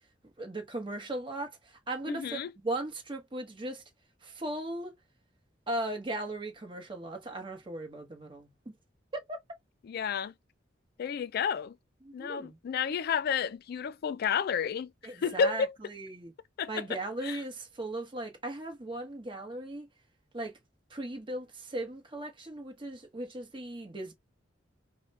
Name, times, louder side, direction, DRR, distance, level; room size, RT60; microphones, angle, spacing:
voice 1, 0.4-1.5 1.9-3.8 4.2-4.9 5.7-8.7 9.1-9.4 12.0-12.6 15.0-15.6 15.9-16.3 16.7-19.9 20.3-20.5 20.9-24.1, right 1 dB, 25° right, 1.0 m, -37 dB
voice 2, 2.1-2.5 9.8-10.3 11.0-11.8 12.1-15.7 16.6-17.4, left 6 dB, 55° left, 0.3 m, -31 dB
5.0 x 2.2 x 2.5 m
head